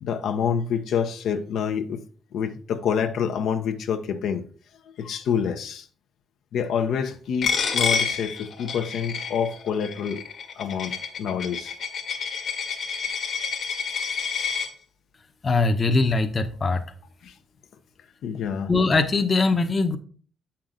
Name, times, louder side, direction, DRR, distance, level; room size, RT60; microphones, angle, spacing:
voice 1, 0.0-2.0 2.3-4.4 5.0-5.9 6.5-10.2 10.6-11.7 17.2-17.3 18.2-18.7, left 7 dB, 75° left, 0.8 m, -27 dB
Coin (dropping), 7.4-14.7, left 6 dB, 60° left, 1.5 m, -29 dB
voice 2, 15.4-16.8 18.7-20.0, left 3 dB, 35° left, 0.8 m, -21 dB
7.8 x 5.7 x 3.8 m
cardioid pair, 90°, 0 cm